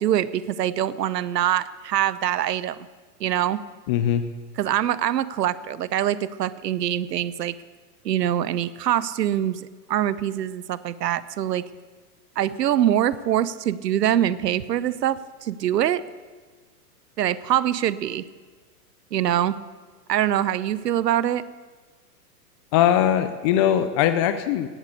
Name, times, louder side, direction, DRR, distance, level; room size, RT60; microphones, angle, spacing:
voice 1, 0.0-2.9 3.2-3.6 4.6-7.6 8.0-11.6 12.4-16.0 17.2-18.3 19.1-19.6 20.1-21.4, right 11 dB, 80° right, 17 dB, 0.9 m, -24 dB
voice 2, 3.9-4.2 22.7-24.7, left 10 dB, 20° left, 10 dB, 0.3 m, -20 dB
17.0 x 8.4 x 8.3 m, 1.4 s
hypercardioid pair, 125°, 48 cm